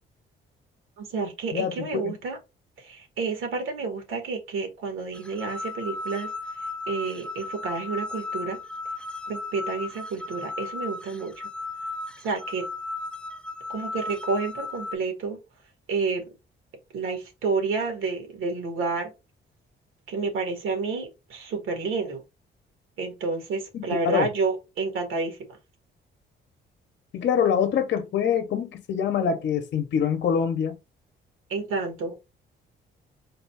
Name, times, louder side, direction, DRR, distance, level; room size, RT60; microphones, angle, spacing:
voice 1, 1.0-2.4 2.8-6.3 6.9-8.6 9.3-11.3 12.2-12.6 13.7-15.4 15.9-16.2 16.9-19.1 20.1-22.2 23.0-25.4 31.5-32.1, right 4 dB, 85° right, 1.7 m, -29 dB
voice 2, 1.5-2.1 23.7-24.3 27.1-30.8, left 7 dB, 60° left, 0.7 m, -25 dB
sound 1, 5.1-14.9, left 3 dB, 5° left, 0.4 m, -35 dB
3.9 x 2.3 x 4.1 m
cardioid pair, 110°, 20 cm